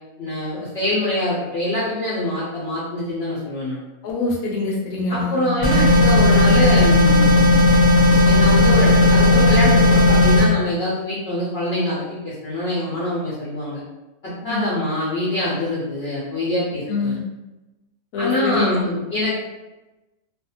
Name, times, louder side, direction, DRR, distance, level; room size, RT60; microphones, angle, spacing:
voice 1, 0.2-3.8 5.1-7.5 8.0-13.8 14.2-17.1 18.2-19.3, left 1 dB, 55° left, -9 dB, 0.8 m, -24 dB
voice 2, 4.0-5.4 14.4-14.7 16.9-17.2 18.1-18.8, left 3 dB, 70° left, -2 dB, 1.1 m, -24 dB
sound 1, 5.6-10.5, left 2 dB, 15° left, 0.8 m, -14 dB
2.5 x 2.4 x 2.7 m, 1.0 s
omnidirectional pair, 1.6 m